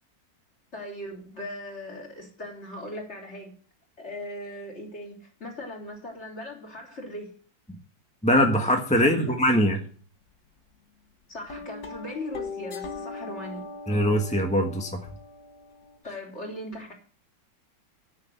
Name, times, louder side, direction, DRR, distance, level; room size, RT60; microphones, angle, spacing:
voice 1, 0.7-3.5 4.0-7.3 9.0-9.4 11.3-13.6 16.0-16.9, left 1 dB, 35° left, 3.6 m, -39 dB
voice 2, 8.2-9.8 13.9-15.0, equal, 5° left, 1.2 m, -22 dB
sound 1, 11.5-16.0, left 4 dB, 60° left, 1.9 m, -40 dB
9.6 x 6.6 x 8.1 m
omnidirectional pair, 2.0 m